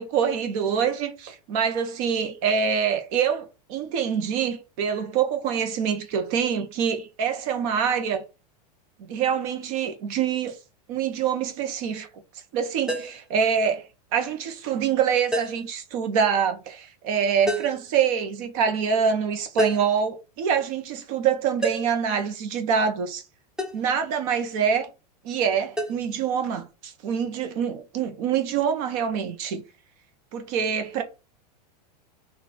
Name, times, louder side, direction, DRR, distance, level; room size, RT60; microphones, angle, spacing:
voice 1, 0.0-8.2 9.1-10.5 10.9-12.1 12.5-13.8 14.1-23.2 23.7-24.9 25.2-29.6 30.3-31.0, right 7 dB, 55° right, 1.3 m, -25 dB
sound 1, 12.9-13.3 15.3-15.7 17.5-17.8 19.6-20.0 21.6-22.0 23.6-23.9 25.8-25.9, right 2 dB, 5° right, 1.1 m, -28 dB
4.2 x 2.9 x 4.4 m
hypercardioid pair, 115°, 21 cm